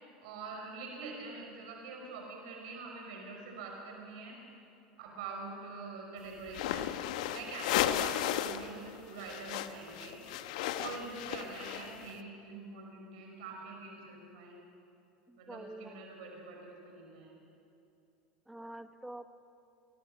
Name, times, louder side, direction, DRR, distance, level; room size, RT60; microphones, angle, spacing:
voice 1, 0.2-4.4 5.0-6.9 7.3-10.2 10.8-14.6 15.4-17.3, right 4 dB, 70° right, 0 dB, 5.7 m, -45 dB
sound 1, 6.5-8.7 8.9-12.1, left 12 dB, 70° left, 1.1 m, -34 dB
voice 2, 15.3-16.0 18.5-19.4, right 1 dB, 5° right, 9 dB, 1.2 m, -47 dB
28.0 x 21.0 x 6.0 m, 2.6 s
hypercardioid pair, 90°, 4 cm